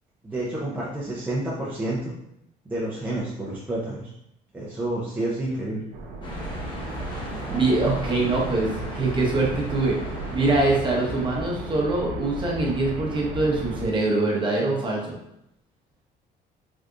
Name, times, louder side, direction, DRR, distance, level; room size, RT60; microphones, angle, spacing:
voice 1, 0.2-2.1 2.6-4.1 4.5-5.8, right 1 dB, 10° right, -6 dB, 0.6 m, -29 dB
sound 1, 5.9-13.9, right 2 dB, 85° right, 0.5 m, -35 dB
sound 2, 6.2-11.8, equal, 30° left, 0.8 m, -36 dB
voice 2, 7.5-8.7 8.9-10.0 10.3-15.0, right 2 dB, 30° right, -2 dB, 0.9 m, -23 dB
3.5 x 2.5 x 2.5 m, 0.78 s
cardioid pair, 110°, 17 cm